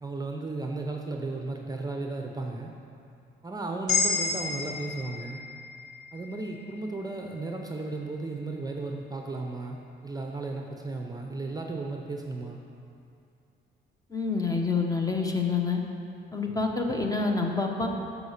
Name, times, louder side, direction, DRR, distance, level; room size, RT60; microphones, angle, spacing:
voice 1, 0.0-2.7 3.4-5.4 6.1-12.6, right 3 dB, 20° right, 2 dB, 0.6 m, -35 dB
sound 1, 3.9-8.1, left 4 dB, 35° left, 1.8 m, -32 dB
voice 2, 14.1-15.8 16.3-17.9, left 4 dB, 20° left, 2 dB, 0.9 m, -27 dB
6.7 x 5.0 x 6.5 m, 2.5 s
cardioid pair, 90°, 20 cm